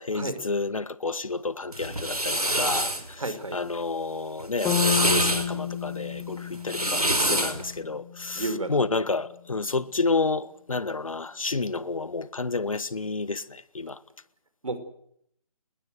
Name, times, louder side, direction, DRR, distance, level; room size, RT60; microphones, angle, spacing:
voice 1, 0.0-2.9 3.5-8.4 8.7-13.4 13.7-14.0, left 3 dB, 65° left, 1.5 m, -30 dB
sound 1, 1.7-3.0 4.4-5.5 6.5-7.6, right 1 dB, 85° right, 4.7 m, -25 dB
voice 2, 3.2-3.6 8.4-8.8 14.6-14.8, right 2 dB, 60° right, 5.3 m, -31 dB
sound 2, 4.6-8.7, left 8 dB, 10° left, 2.1 m, -31 dB
27.5 x 21.0 x 6.6 m
figure-of-eight pair, 150°, 19 cm